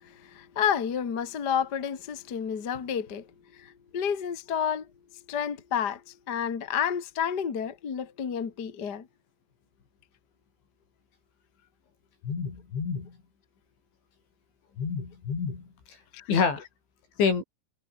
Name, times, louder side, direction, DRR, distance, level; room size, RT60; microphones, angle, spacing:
voice 1, 0.0-3.3 3.5-4.9 5.3-9.1 16.1-16.3, left 8 dB, 50° left, 1.2 m, -30 dB
voice 2, 12.2-13.2 14.8-15.7 16.3-16.6 17.2-17.4, left 5 dB, 70° left, 8.4 m, -27 dB
omnidirectional pair, 5.6 m